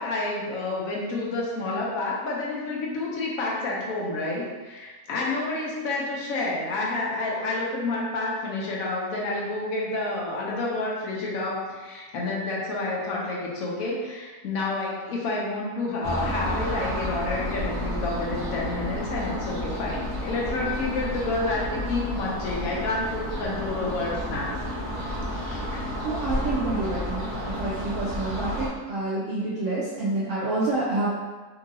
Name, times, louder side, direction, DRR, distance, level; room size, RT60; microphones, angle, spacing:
voice 1, 0.0-24.6 25.2-25.8, left 2 dB, 70° left, -3 dB, 1.0 m, -29 dB
sound 1, 16.0-28.7, equal, 90° right, 0.4 m, -31 dB
voice 2, 26.0-31.1, right 2 dB, 65° right, -8 dB, 0.9 m, -28 dB
2.9 x 2.7 x 2.6 m, 1.3 s
omnidirectional pair, 1.6 m